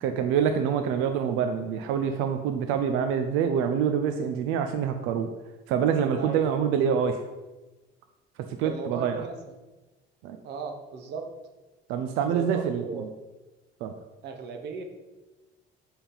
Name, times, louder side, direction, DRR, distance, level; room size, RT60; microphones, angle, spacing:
voice 1, 0.0-5.3 5.7-7.2 8.5-9.2 10.2-10.4 11.9-13.0 13.8-13.9, right 7 dB, 85° right, 7 dB, 0.5 m, -26 dB
voice 2, 6.1-6.6 8.6-9.3 10.4-11.2 12.3-13.0 14.2-14.8, right 5 dB, 55° right, 4 dB, 1.0 m, -36 dB
7.0 x 3.6 x 5.5 m, 1.1 s
cardioid pair, 165°, 20 cm